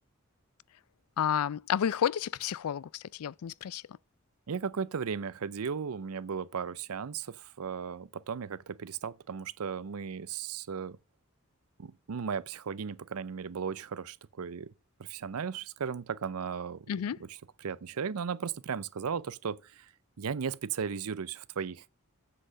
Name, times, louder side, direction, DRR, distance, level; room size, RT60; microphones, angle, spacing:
voice 1, 1.2-3.8 16.9-17.2, left 9 dB, 80° left, 0.4 m, -31 dB
voice 2, 4.5-11.0 11.8-14.7 15.0-16.9 17.3-19.9 20.2-21.9, right 6 dB, 80° right, 0.5 m, -36 dB
7.7 x 6.3 x 6.5 m
head